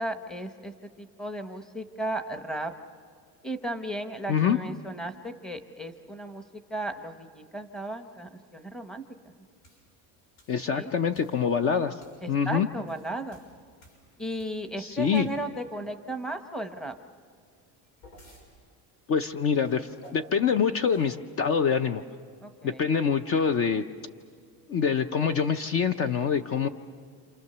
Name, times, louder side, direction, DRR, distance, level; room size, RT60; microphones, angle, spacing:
voice 1, 0.0-2.7 3.4-6.4 6.7-9.3 10.6-10.9 12.2-13.4 14.2-16.9 22.4-22.8, right 1 dB, ahead, 8 dB, 0.8 m, -35 dB
sound 1, 9.6-9.9 10.4-10.6 11.1-11.5 12.0-12.3 12.7-14.7 15.1-15.6 17.5-18.5 19.6-20.3 20.9-21.2, equal, 90° left, 6.9 m, -53 dB
voice 2, 10.5-12.0 12.3-12.7 14.8-15.3 19.1-22.0 22.6-23.8 24.7-26.7, left 6 dB, 35° left, 10 dB, 0.6 m, -25 dB
28.0 x 28.0 x 6.7 m, 2.1 s
cardioid pair, 170°, 37 cm